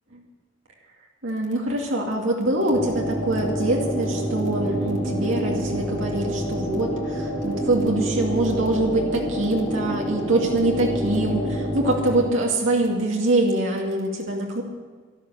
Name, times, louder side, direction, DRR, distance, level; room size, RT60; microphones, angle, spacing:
voice 1, 1.2-14.6, right 1 dB, 85° right, -1 dB, 2.4 m, -24 dB
sound 1, 2.7-12.3, right 1 dB, 15° left, 4.3 m, -28 dB
12.5 x 12.0 x 6.9 m, 1.5 s
head